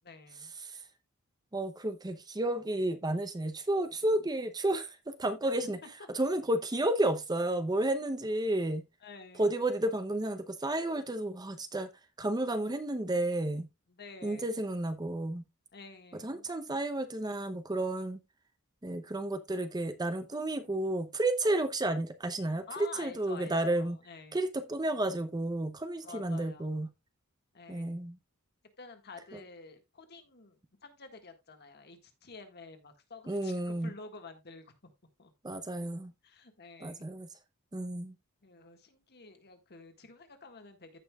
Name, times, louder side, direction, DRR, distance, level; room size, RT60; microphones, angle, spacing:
voice 1, 0.0-0.5 9.0-9.5 13.9-14.6 15.7-16.4 22.7-24.4 26.0-26.8 27.5-28.0 28.8-34.7 35.2-35.3 36.2-37.1 38.4-40.9, left 4 dB, 50° left, 1.7 m, -50 dB
voice 2, 1.5-5.8 6.1-8.8 9.4-11.9 12.2-13.7 14.2-15.4 16.2-18.2 18.8-24.0 24.3-26.9 27.7-28.2 29.3-29.4 33.3-33.9 35.4-36.1 36.8-37.3 37.7-38.1, right 1 dB, 20° right, 0.7 m, -31 dB
15.0 x 5.5 x 2.3 m
head